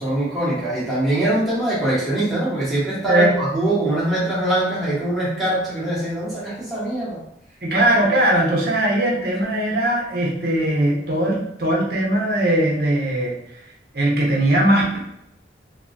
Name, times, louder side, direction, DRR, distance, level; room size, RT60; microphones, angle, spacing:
voice 1, 0.0-7.2, right 1 dB, ahead, -11 dB, 1.2 m, -22 dB
voice 2, 7.6-13.4 13.9-15.0, right 1 dB, 60° right, -3 dB, 0.7 m, -19 dB
3.0 x 2.2 x 2.6 m, 0.78 s
head